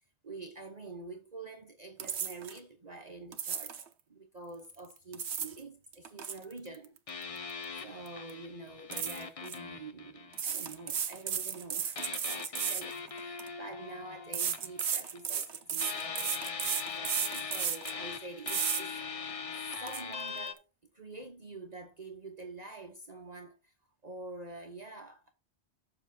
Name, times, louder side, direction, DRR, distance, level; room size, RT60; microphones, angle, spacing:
voice 1, 0.2-7.0 7.8-19.3 19.6-20.6 20.9-23.7 24.0-25.3, right 2 dB, 40° right, 1.1 m, -47 dB
sound 1, 2.0-2.6 3.3-3.9 4.9-5.6 5.9-7.8 8.1-8.3 8.9-9.6 10.3-13.5 14.3-18.0 18.5-18.8 19.3-19.4 19.7-20.0, right 7 dB, 75° right, 1.2 m, -34 dB
sound 2, 7.1-10.9 12.0-15.5 15.8-20.5, left 5 dB, 35° left, 0.7 m, -41 dB
7.4 x 7.3 x 4.2 m
omnidirectional pair, 1.2 m